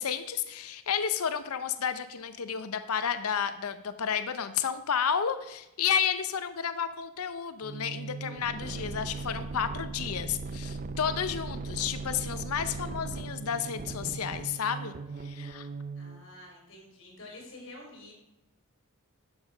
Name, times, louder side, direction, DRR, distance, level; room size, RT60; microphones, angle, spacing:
voice 1, 0.0-14.9 15.2-15.7, left 7 dB, 85° left, 11 dB, 0.6 m, -31 dB
sound 1, 7.6-16.2, right 3 dB, 35° right, 0.5 m, -38 dB
voice 2, 16.0-18.1, left 2 dB, 60° left, -1 dB, 4.2 m, -48 dB
11.5 x 7.2 x 5.1 m, 0.93 s
head